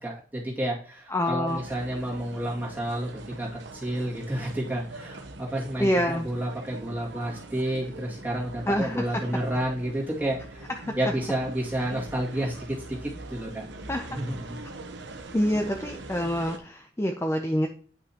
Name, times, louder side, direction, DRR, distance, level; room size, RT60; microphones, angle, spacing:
voice 1, 0.0-10.6 10.9-13.7 14.1-14.6, right 1 dB, 10° right, -5 dB, 2.1 m, -30 dB
voice 2, 1.1-1.6 5.8-6.3 8.7-9.2 13.9-14.1 15.3-17.7, equal, 15° left, 4 dB, 0.5 m, -26 dB
sound 1, 1.5-16.6, right 2 dB, 85° right, 0.9 m, -42 dB
9.3 x 5.4 x 2.8 m, 0.43 s
head